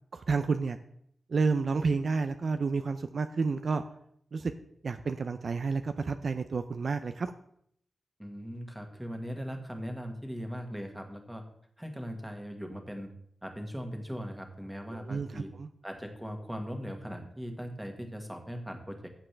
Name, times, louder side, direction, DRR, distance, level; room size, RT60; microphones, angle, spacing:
voice 1, 0.1-0.8 1.3-3.8 4.3-4.5 4.8-7.3 14.9-15.7, right 4 dB, 55° right, 9 dB, 0.5 m, -30 dB
voice 2, 8.2-11.4 11.8-13.1 13.4-15.5 15.8-19.1, equal, 5° right, 3 dB, 1.6 m, -39 dB
15.0 x 7.6 x 3.3 m, 0.71 s
wide cardioid pair, 125°, 0 cm